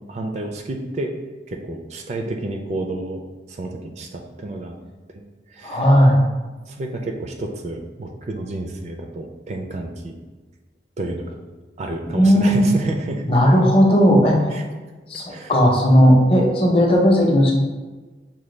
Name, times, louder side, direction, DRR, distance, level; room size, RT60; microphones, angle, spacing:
voice 1, 0.1-1.2 1.5-3.2 3.5-4.8 5.1-5.2 5.5-5.9 6.7-10.2 11.0-11.3 11.8-13.3 14.5-14.6 15.3-15.5, right 2 dB, 40° right, 3 dB, 0.3 m, -30 dB
voice 2, 5.6-6.2 12.1-12.7 13.3-14.5 15.1-17.5, equal, 30° left, -1 dB, 0.6 m, -15 dB
5.9 x 2.2 x 3.2 m, 1.3 s
head